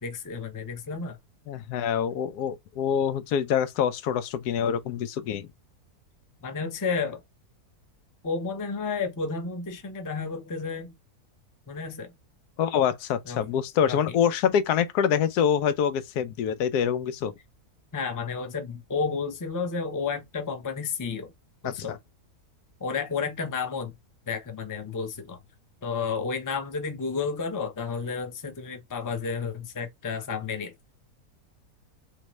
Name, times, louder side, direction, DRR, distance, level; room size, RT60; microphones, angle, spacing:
voice 1, 0.0-1.2 6.4-7.2 8.2-10.9 11.7-12.1 13.2-13.5 13.8-14.2 17.9-21.3 21.6-21.9 22.8-23.9 24.3-25.4 25.8-30.7, left 5 dB, 25° left, 0.4 m, -31 dB
voice 2, 1.5-5.5 12.6-17.3 21.6-22.0, left 8 dB, 90° left, 1.1 m, -25 dB
3.8 x 3.1 x 3.1 m
omnidirectional pair, 1.6 m